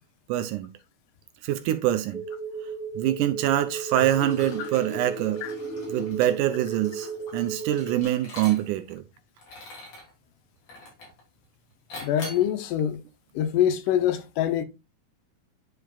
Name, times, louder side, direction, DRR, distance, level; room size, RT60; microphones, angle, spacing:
voice 1, 0.3-0.7 1.4-2.2 3.0-5.4 5.9-9.0, right 13 dB, 80° right, 2.0 m, -25 dB
sound 1, 2.1-8.0, right 5 dB, 5° right, 1.0 m, -35 dB
Liquid, 3.9-8.9 9.4-10.1 10.7-11.2 11.9-12.5, left 2 dB, 65° left, 4.2 m, -42 dB
voice 2, 12.0-13.0 13.4-14.6, left 10 dB, 80° left, 2.2 m, -24 dB
10.5 x 4.8 x 2.3 m
omnidirectional pair, 3.9 m